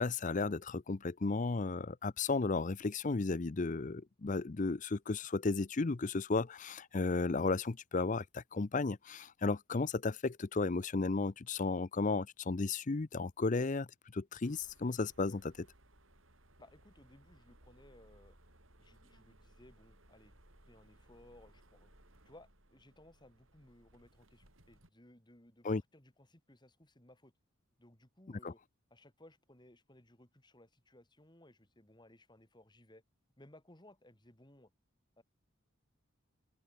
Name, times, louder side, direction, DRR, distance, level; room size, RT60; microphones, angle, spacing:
voice 1, 0.0-13.9 14.1-15.7 25.6-25.8 28.4-28.5, left 3 dB, 40° left, 0.6 m, -34 dB
sound 1, 14.4-24.9, right 1 dB, 75° right, 7.2 m, -64 dB
voice 2, 16.6-18.3 18.8-20.3 20.7-21.9 22.2-27.3 27.8-28.6 28.9-33.0 33.4-34.7 35.2-35.3, left 1 dB, 20° left, 3.4 m, -61 dB
open air
head